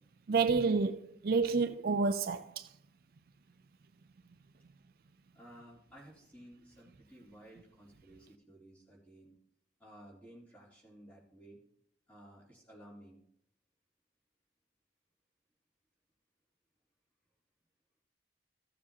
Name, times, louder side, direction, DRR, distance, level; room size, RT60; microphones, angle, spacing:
voice 1, 0.3-2.7, right 4 dB, 55° right, 0.4 m, -29 dB
voice 2, 5.3-9.3 9.8-11.6 12.1-13.2, right 1 dB, 10° left, 3.2 m, -55 dB
15.0 x 7.3 x 2.8 m
head